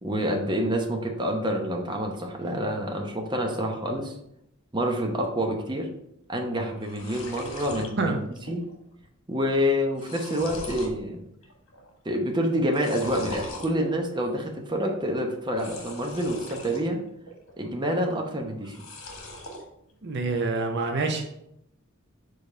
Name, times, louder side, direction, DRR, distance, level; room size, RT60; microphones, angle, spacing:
voice 1, 0.0-4.2 4.7-5.9 6.3-8.1 8.5-8.7 9.3-11.2 12.0-17.0 17.6-18.7, equal, 20° right, 2 dB, 0.8 m, -27 dB
sound 1, 6.4-6.5 6.7-7.9 8.4-8.8 9.0-9.1 9.7-11.0 11.4-11.9 12.6-13.7 15.5-16.8 17.2-17.9 18.6-19.6, left 1 dB, 90° left, 1.5 m, -40 dB
voice 2, 20.0-21.3, right 3 dB, 55° right, 4 dB, 0.7 m, -27 dB
5.0 x 4.0 x 5.4 m, 0.78 s
head